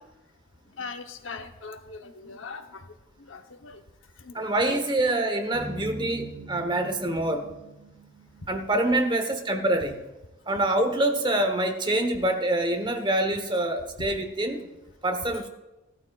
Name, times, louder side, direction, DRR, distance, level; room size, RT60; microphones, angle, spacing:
voice 1, 0.8-3.8 4.2-4.8 14.0-14.1, left 4 dB, 80° left, 7 dB, 0.9 m, -41 dB
voice 2, 4.3-7.5 8.5-10.0 10.5-14.6 15.0-15.5, right 1 dB, 25° right, 6 dB, 1.0 m, -25 dB
sound 1, 5.5-9.9, right 2 dB, 10° left, 3.4 m, -43 dB
14.5 x 13.0 x 2.4 m, 1.0 s
head